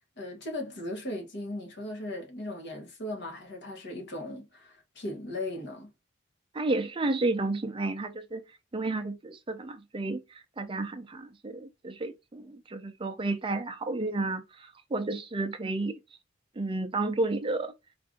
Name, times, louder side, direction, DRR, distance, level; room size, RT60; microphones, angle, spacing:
voice 1, 0.2-5.9, left 1 dB, 60° left, 1.3 m, -37 dB
voice 2, 6.5-8.4 8.7-16.0 16.6-17.7, right 2 dB, 25° right, 0.5 m, -31 dB
4.5 x 2.6 x 3.6 m
head